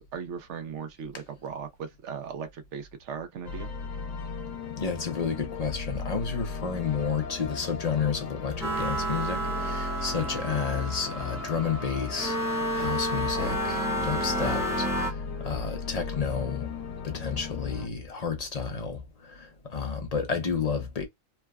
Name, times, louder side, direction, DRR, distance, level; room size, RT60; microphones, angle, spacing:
voice 1, 0.0-3.7, right 6 dB, 70° right, 0.9 m, -38 dB
sound 1, 3.4-17.9, left 5 dB, 75° left, 1.0 m, -37 dB
voice 2, 4.8-15.2 15.4-16.7 17.0-21.0, left 6 dB, 40° left, 0.6 m, -31 dB
sound 2, 8.6-15.1, right 1 dB, 5° right, 0.5 m, -31 dB
3.3 x 2.1 x 2.3 m
omnidirectional pair, 1.3 m